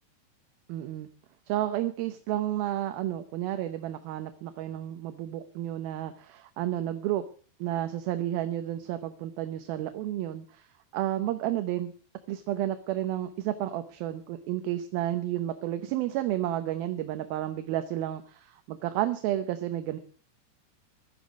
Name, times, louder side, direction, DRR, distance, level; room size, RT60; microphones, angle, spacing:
voice 1, 0.7-1.1 1.5-7.2 7.6-10.7 10.9-11.9 12.3-20.0, right 13 dB, 75° right, 9 dB, 2.6 m, -31 dB
16.0 x 12.0 x 6.1 m, 0.41 s
omnidirectional pair, 4.7 m